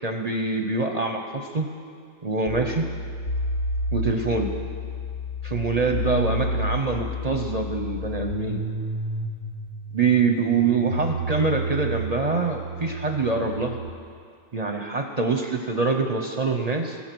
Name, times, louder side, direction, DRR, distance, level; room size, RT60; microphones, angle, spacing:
voice 1, 0.0-1.7 2.2-2.9 3.9-4.5 5.4-8.6 9.9-13.8 14.5-17.0, right 4 dB, 40° right, 4 dB, 0.6 m, -25 dB
sound 1, 2.5-13.9, equal, 55° left, 1.4 m, -31 dB
20.5 x 7.2 x 6.0 m, 2.2 s
omnidirectional pair, 1.4 m